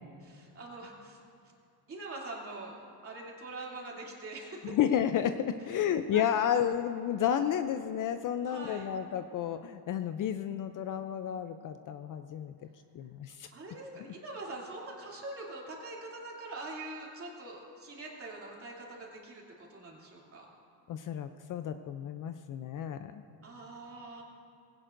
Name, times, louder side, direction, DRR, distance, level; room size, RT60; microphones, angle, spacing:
voice 1, 0.2-1.2 1.9-4.8 5.8-6.5 8.4-8.9 13.5-19.4 19.7-20.5 23.4-24.2, right 2 dB, 30° right, -3 dB, 2.8 m, -44 dB
voice 2, 4.6-12.5 12.9-13.5 20.9-23.2, left 9 dB, 45° left, 9 dB, 0.5 m, -31 dB
19.0 x 17.0 x 2.6 m, 2.5 s
cardioid pair, 140°, 44 cm